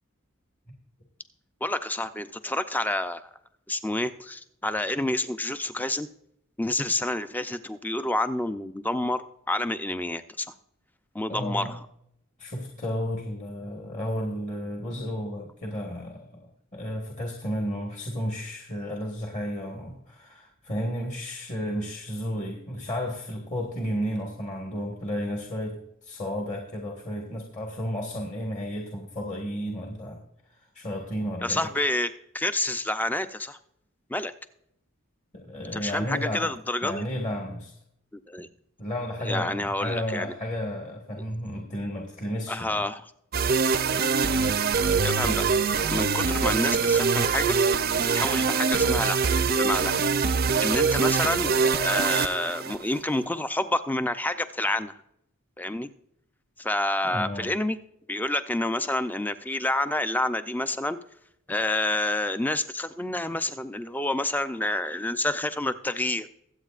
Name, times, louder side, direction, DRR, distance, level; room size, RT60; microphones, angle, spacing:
voice 1, 1.6-3.3 3.7-6.1 6.6-10.5 11.1-11.8 31.4-32.1 32.3-33.6 34.1-34.3 35.7-37.0 38.3-38.5 39.2-40.3 42.5-43.1 45.0-45.4 45.9-47.6 48.1-49.2 49.6-50.3 50.6-54.9 55.6-55.9 56.6-57.8 58.1-61.0 61.5-66.3, left 1 dB, 10° left, 11 dB, 0.5 m, -28 dB
voice 2, 11.3-11.7 12.4-30.2 30.7-31.7 35.3-36.5 36.8-37.7 38.8-42.8 57.0-57.5, equal, 35° left, 0 dB, 1.6 m, -32 dB
sound 1, 43.3-53.0, right 5 dB, 45° right, 0.6 m, -24 dB
23.0 x 8.2 x 2.4 m, 0.75 s
head